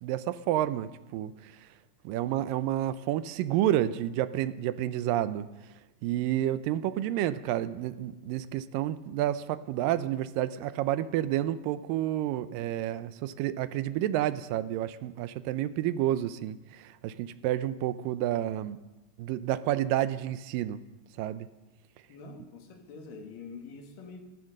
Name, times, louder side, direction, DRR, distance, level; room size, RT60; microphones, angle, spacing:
voice 1, 0.0-1.5 2.0-5.5 6.0-18.8 19.2-20.8 21.2-21.5, right 12 dB, 80° right, 14 dB, 2.3 m, -30 dB
voice 2, 22.1-24.2, left 4 dB, 70° left, 3 dB, 3.4 m, -45 dB
15.0 x 14.0 x 6.5 m, 1.1 s
omnidirectional pair, 4.0 m